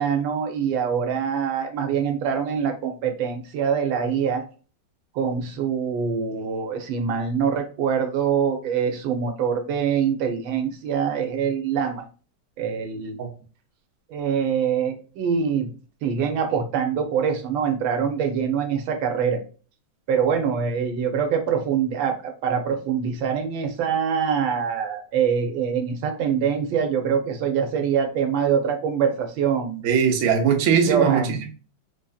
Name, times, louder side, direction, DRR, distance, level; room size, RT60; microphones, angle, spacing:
voice 1, 0.0-4.5 5.1-12.0 12.6-13.2 14.1-15.7 16.0-19.4 20.1-29.9 30.9-31.4, right 7 dB, 85° right, 1.5 m, -24 dB
voice 2, 29.8-31.5, right 7 dB, 60° right, 0.8 m, -20 dB
4.2 x 2.7 x 2.3 m
omnidirectional pair, 2.1 m